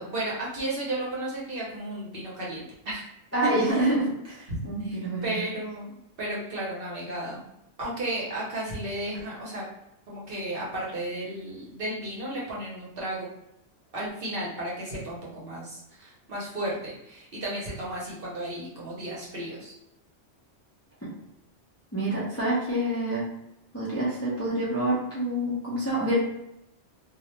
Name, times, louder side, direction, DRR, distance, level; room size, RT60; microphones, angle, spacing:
voice 1, 0.0-3.0 3.4-3.9 4.8-7.4 7.8-9.7 10.1-13.3 13.9-19.7, right 1 dB, 55° right, -5 dB, 0.9 m, -34 dB
voice 2, 3.3-5.4 21.9-23.2 23.7-26.2, right 1 dB, 20° left, -8 dB, 0.4 m, -27 dB
2.4 x 2.1 x 2.9 m, 0.83 s
omnidirectional pair, 1.3 m